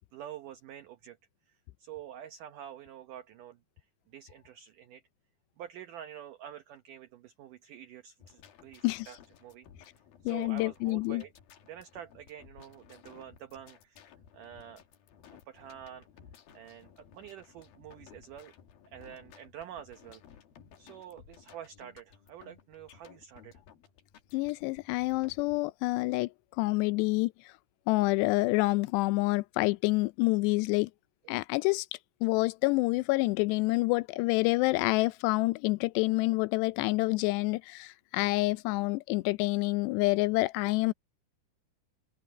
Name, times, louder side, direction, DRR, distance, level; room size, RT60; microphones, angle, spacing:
voice 1, 0.1-1.2 1.4-5.0 5.6-9.9 10.2-11.3 11.7-14.1 14.3-14.8 15.5-16.1 16.5-18.5 18.9-20.2 20.8-23.6, right 10 dB, 80° right, 1.8 m, -47 dB
sound 1, 8.2-25.6, left 8 dB, 60° left, 3.5 m, -57 dB
voice 2, 10.3-11.2 24.3-26.3 26.6-27.3 27.9-30.9 31.3-31.9 32.2-40.9, left 22 dB, 85° left, 2.6 m, -27 dB
open air
omnidirectional pair, 5.0 m